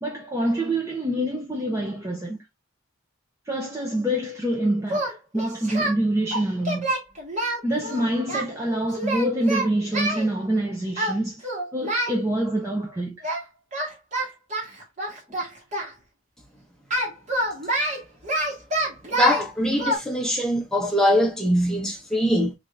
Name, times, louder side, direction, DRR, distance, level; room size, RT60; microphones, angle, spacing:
voice 1, 0.0-2.4 3.5-6.9 7.6-11.5 11.7-13.2, right 1 dB, 15° right, 0.5 m, -26 dB
Singing, 4.9-6.0 6.3-8.4 8.9-10.3 11.0-11.2 11.4-12.2 13.2-13.4 13.7-15.9 16.9-19.4 19.8-20.0, right 1 dB, 35° right, 1.3 m, -27 dB
voice 2, 19.1-22.5, left 1 dB, 5° left, 0.9 m, -22 dB
3.5 x 2.6 x 3.0 m
head